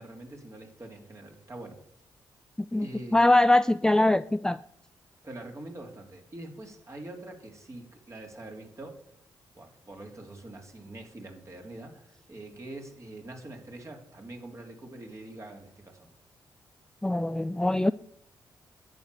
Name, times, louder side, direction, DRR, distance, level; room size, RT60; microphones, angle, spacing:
voice 1, 0.0-1.8 2.8-3.3 5.2-9.0 9.5-16.1, right 2 dB, 35° right, 2 dB, 3.5 m, -44 dB
voice 2, 2.7-4.6 17.0-17.9, left 2 dB, 10° left, 13 dB, 0.4 m, -22 dB
11.0 x 8.2 x 6.9 m, 0.70 s
supercardioid pair, 50°, 9 cm